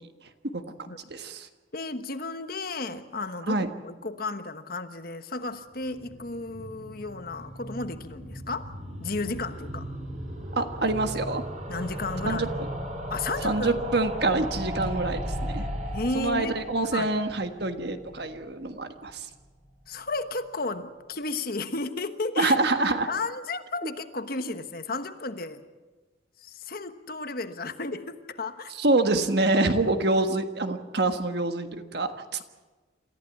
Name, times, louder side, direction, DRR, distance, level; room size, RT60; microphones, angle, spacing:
voice 1, 1.1-1.5 3.5-3.7 10.6-11.4 12.2-12.5 13.4-15.7 16.1-19.3 22.4-23.1 28.8-32.4, right 2 dB, 55° right, 7 dB, 1.5 m, -26 dB
voice 2, 1.7-8.7 9.0-9.9 11.7-12.5 13.1-13.8 15.9-17.1 19.9-22.6 23.1-25.6 26.4-28.7, left 3 dB, 50° left, 9 dB, 1.2 m, -33 dB
sound 1, 5.7-18.8 19.1-19.2 19.4-19.5 19.7-19.8, equal, 40° right, 4.2 m, -36 dB
27.0 x 14.5 x 8.4 m, 1.3 s
head